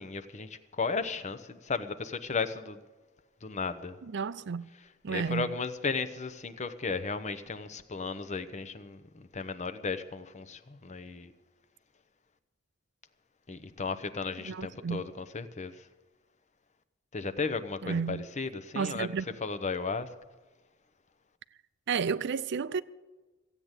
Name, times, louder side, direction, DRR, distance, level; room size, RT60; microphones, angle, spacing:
voice 1, 0.0-2.8 3.4-4.0 5.1-11.3 13.5-15.9 17.1-19.1 19.4-20.1, left 4 dB, 35° left, 0.8 m, -35 dB
voice 2, 4.0-4.7 5.0-5.5 14.4-15.1 17.8-18.2 18.7-19.3 21.9-22.8, right 6 dB, 60° right, 0.5 m, -32 dB
15.0 x 9.0 x 8.1 m
head